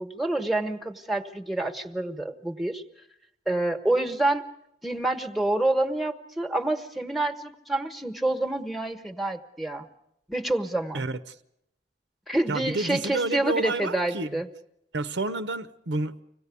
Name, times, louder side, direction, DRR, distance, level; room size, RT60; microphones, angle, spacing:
voice 1, 0.0-2.8 3.5-4.4 4.8-9.9 10.3-11.1 12.3-14.5, right 2 dB, ahead, 8 dB, 1.2 m, -27 dB
voice 2, 10.9-11.3 12.5-14.4 14.9-16.2, right 2 dB, 80° right, 11 dB, 0.9 m, -30 dB
25.5 x 18.0 x 8.4 m, 0.81 s
head